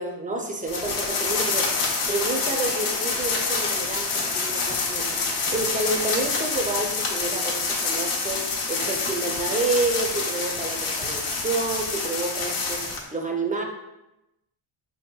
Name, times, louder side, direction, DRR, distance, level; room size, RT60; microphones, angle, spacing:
voice 1, 0.0-1.7 2.1-13.6, right 3 dB, 20° right, 2 dB, 0.4 m, -29 dB
sound 1, 0.7-13.0, left 4 dB, 90° left, 0.7 m, -27 dB
4.0 x 2.8 x 2.2 m, 0.93 s
cardioid pair, 90°, 49 cm